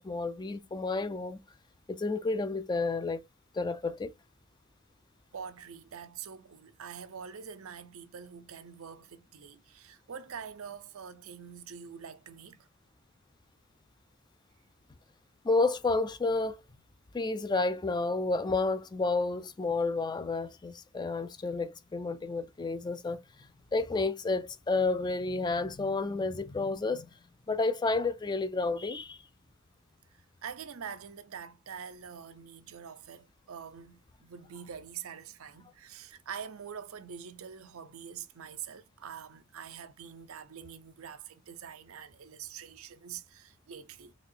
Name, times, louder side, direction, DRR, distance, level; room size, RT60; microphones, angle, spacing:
voice 1, 0.0-1.4 1.9-3.2 3.5-4.1 15.4-16.6 17.1-23.2 23.7-27.1 27.5-29.2, left 3 dB, 20° left, 0.3 m, -30 dB
voice 2, 5.3-12.7 30.1-44.1, right 7 dB, 80° right, 0.6 m, -45 dB
4.1 x 3.0 x 2.6 m
head